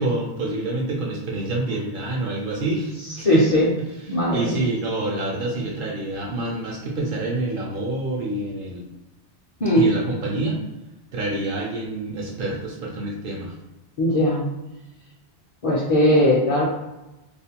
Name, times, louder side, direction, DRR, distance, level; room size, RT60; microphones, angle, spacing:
voice 1, 0.0-3.4 4.1-8.9 9.8-10.6 11.1-13.6, right 2 dB, 60° right, -2 dB, 0.6 m, -27 dB
voice 2, 3.2-3.7 4.1-4.5 9.6-9.9 14.0-14.4 15.6-16.6, left 1 dB, 45° left, -6 dB, 0.5 m, -18 dB
2.4 x 2.1 x 2.8 m, 0.99 s
omnidirectional pair, 1.1 m